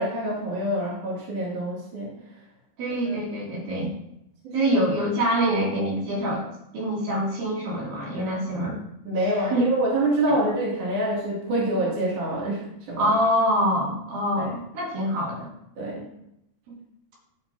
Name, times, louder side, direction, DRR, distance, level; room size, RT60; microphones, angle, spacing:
voice 1, 0.0-2.2 3.0-3.2 4.4-4.5 9.1-13.1 14.4-14.5 15.8-16.1, right 1 dB, 60° right, -5 dB, 3.7 m, -26 dB
voice 2, 2.8-3.9 4.5-6.5 6.7-8.8 9.2-9.7 13.0-15.5 16.7-16.8, equal, 75° right, -6 dB, 4.3 m, -25 dB
14.0 x 6.1 x 2.7 m, 0.79 s
omnidirectional pair, 4.2 m